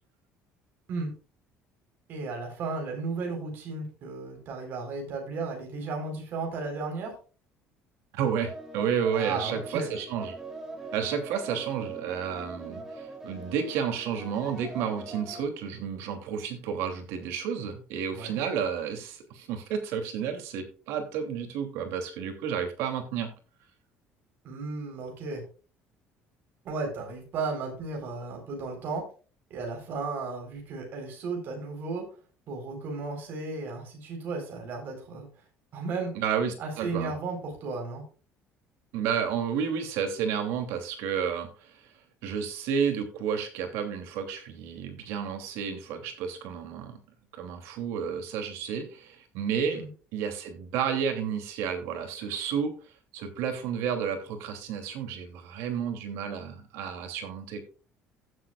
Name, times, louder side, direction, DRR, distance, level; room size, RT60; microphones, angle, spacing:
voice 1, 2.1-7.1 9.1-9.9 18.1-18.4 24.4-25.4 26.6-29.0 29.5-32.0 32.5-35.3 35.7-36.2 36.6-38.0 49.7-49.9, right 3 dB, 45° right, 2 dB, 4.0 m, -34 dB
voice 2, 8.1-10.4 10.9-23.3 36.1-37.1 38.9-41.9 42.2-47.0 47.3-49.8 50.1-52.7 53.1-57.6, right 7 dB, 80° right, 5 dB, 2.8 m, -31 dB
sound 1, 8.5-15.4, right 2 dB, 10° right, 2.3 m, -42 dB
16.0 x 7.7 x 2.4 m, 0.37 s
cardioid pair, 165°, 4 cm